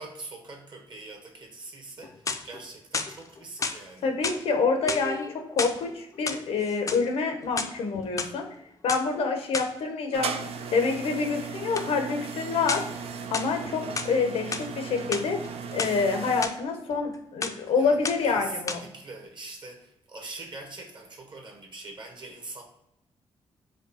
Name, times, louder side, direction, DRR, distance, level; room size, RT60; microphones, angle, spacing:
voice 1, 0.0-4.1 17.7-22.6, right 2 dB, 50° right, 2 dB, 1.2 m, -43 dB
sound 1, 2.0-2.6 2.9-3.8 4.2-4.4 4.8-5.8 6.1-7.0 7.4-8.3 8.9-9.0 9.5-9.8 11.7-11.9 12.7-13.0 13.3-14.1 14.5-14.7 15.0-15.9 16.4-16.5 16.9-17.2 17.4-17.7 18.0-18.4 18.7-18.8, left 4 dB, 35° left, 0.4 m, -32 dB
voice 2, 4.0-8.5 8.8-10.4 10.7-12.9 13.3-15.4 15.7-18.8, left 4 dB, 90° left, 4 dB, 0.8 m, -27 dB
sound 2, 10.1-16.5, right 5 dB, 80° right, 0.5 m, -36 dB
5.1 x 2.3 x 4.0 m, 0.83 s
cardioid pair, 110°, 10 cm